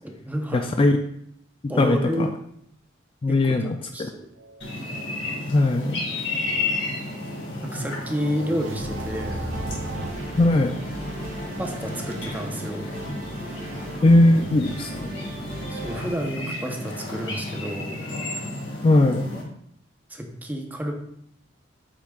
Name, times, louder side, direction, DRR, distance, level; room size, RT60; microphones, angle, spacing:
voice 1, 0.0-0.7 1.7-2.3 3.3-4.2 7.6-9.4 11.6-12.9 15.7-18.0 20.1-20.9, equal, 10° right, 2 dB, 0.8 m, -30 dB
voice 2, 0.5-1.0 1.6-2.3 3.2-4.1 5.5-6.0 10.4-10.8 14.0-15.2 18.8-19.3, left 2 dB, 30° left, 6 dB, 0.3 m, -19 dB
sound 1, 4.0-10.1, right 3 dB, 75° right, 0.5 m, -40 dB
sound 2, 4.6-19.4, left 2 dB, 75° left, 2.1 m, -33 dB
sound 3, 8.7-16.1, right 1 dB, 40° right, 2.0 m, -36 dB
8.1 x 6.0 x 2.4 m, 0.70 s
head